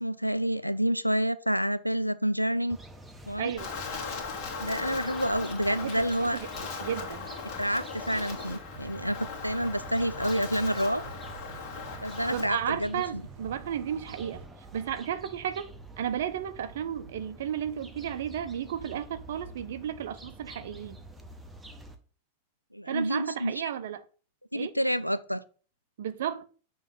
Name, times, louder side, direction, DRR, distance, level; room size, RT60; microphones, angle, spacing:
voice 1, 0.0-2.8 3.3-3.5 4.6-6.4 7.6-11.0 12.0-13.2 22.7-23.5 24.5-25.4, equal, 90° left, 0.3 m, -28 dB
sound 1, 2.7-21.9, right 1 dB, 10° right, 0.8 m, -48 dB
voice 2, 3.4-3.8 5.7-6.5 6.8-7.3 12.3-14.4 14.7-15.7 16.0-21.0 22.9-24.0 24.5-24.7 26.0-26.5, right 9 dB, 60° right, 0.5 m, -33 dB
Wind, 3.6-12.4, left 5 dB, 40° left, 1.9 m, -38 dB
sound 2, 8.7-14.5, right 5 dB, 40° right, 1.0 m, -48 dB
6.8 x 3.1 x 5.2 m
figure-of-eight pair, 90°, 0 cm